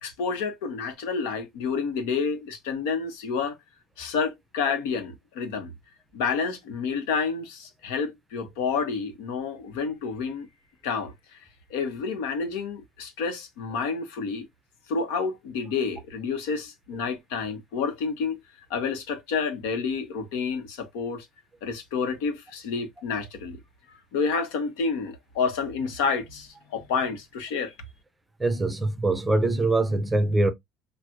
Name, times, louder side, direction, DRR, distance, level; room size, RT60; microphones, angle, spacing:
voice 1, 0.0-3.6 4.0-5.7 6.1-10.5 10.8-11.1 11.7-14.4 14.9-18.4 18.7-21.3 21.6-23.6 24.1-27.7, left 5 dB, 90° left, 1.2 m, -29 dB
voice 2, 28.4-30.5, right 2 dB, 5° right, 0.6 m, -23 dB
6.1 x 2.5 x 2.6 m
cardioid pair, 155°, 0 cm